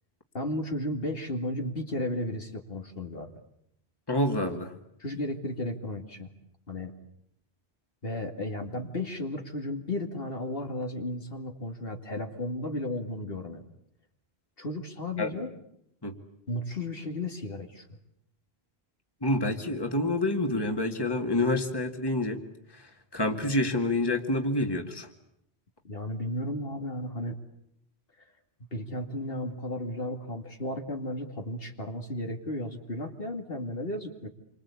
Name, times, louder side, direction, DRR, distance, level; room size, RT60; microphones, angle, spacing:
voice 1, 0.3-3.3 5.0-6.3 6.7-6.9 8.0-13.6 14.6-15.5 16.5-17.9 25.8-27.4 28.7-34.3, left 1 dB, 60° left, 4 dB, 2.6 m, -34 dB
voice 2, 4.1-4.7 15.2-15.3 16.0-16.1 19.2-22.4 22.7-25.1, left 1 dB, 20° left, 4 dB, 2.2 m, -28 dB
28.5 x 24.5 x 8.5 m, 0.76 s
omnidirectional pair, 1.1 m